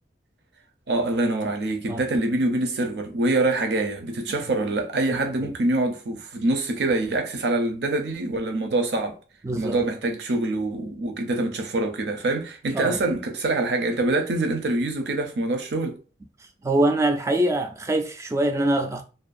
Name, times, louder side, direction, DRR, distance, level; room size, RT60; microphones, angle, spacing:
voice 1, 0.9-9.2 9.6-16.0, right 2 dB, 70° right, 0.5 m, -25 dB
voice 2, 5.1-5.5 9.4-9.8 12.7-13.0 16.6-19.0, right 1 dB, 15° right, 0.3 m, -24 dB
2.5 x 2.2 x 2.4 m
head